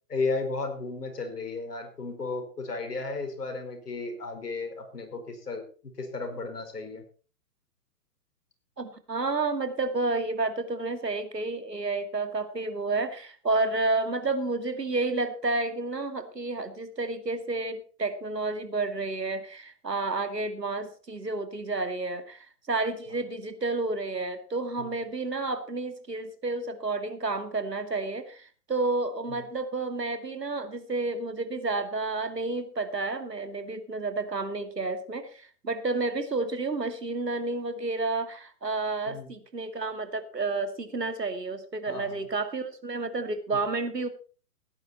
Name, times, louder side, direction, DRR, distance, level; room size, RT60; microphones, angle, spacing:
voice 1, 0.1-7.0 23.1-23.2 24.8-24.9 29.3-29.4 39.1-39.3 41.9-42.2 43.5-43.6, left 3 dB, 70° left, 5 dB, 5.1 m, -34 dB
voice 2, 8.8-44.1, right 3 dB, 85° right, 9 dB, 2.4 m, -30 dB
17.0 x 10.0 x 4.3 m, 0.38 s
figure-of-eight pair, 120°, 48 cm